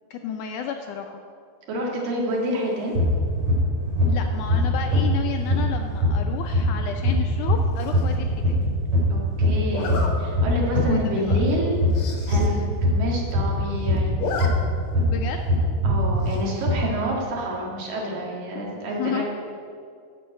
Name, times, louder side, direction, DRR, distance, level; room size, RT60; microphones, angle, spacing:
voice 1, 0.1-1.2 4.1-8.7 10.8-11.4 12.4-12.7 15.1-15.7 18.8-19.2, left 8 dB, 80° left, 4 dB, 1.9 m, -32 dB
voice 2, 1.7-2.9 9.1-11.8 12.3-14.2 15.8-19.2, equal, 75° right, -2 dB, 3.5 m, -28 dB
sound 1, 3.0-15.2 15.5-16.2 16.6-16.7, left 1 dB, 55° right, 3.8 m, -22 dB
Zipper (clothing), 7.8-8.2 9.7-10.1 10.7-10.8 11.2-11.3 11.5-11.6 11.9-12.5 12.8-12.9 13.1-13.7 14.0-14.5 14.8-14.9 16.2-16.6, left 4 dB, 60° left, 1.5 m, -32 dB
12.0 x 5.5 x 7.7 m, 2.3 s
omnidirectional pair, 4.1 m